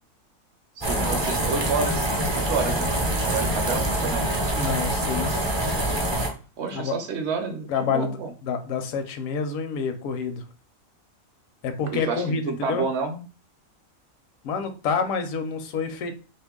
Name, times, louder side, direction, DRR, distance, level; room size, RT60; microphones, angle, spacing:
sound 1, 0.8-6.3, right 1 dB, 30° right, 0.5 m, -25 dB
voice 1, 0.8-2.1 2.3-2.9 3.2-4.3 6.6-8.3 12.1-13.2, right 5 dB, 65° right, 5 dB, 0.8 m, -29 dB
voice 2, 4.5-5.5 6.7-6.9 7.7-10.4 11.6-12.9 14.4-16.1, left 5 dB, 80° left, 8 dB, 1.0 m, -28 dB
2.7 x 2.6 x 3.6 m, 0.36 s
omnidirectional pair, 1.4 m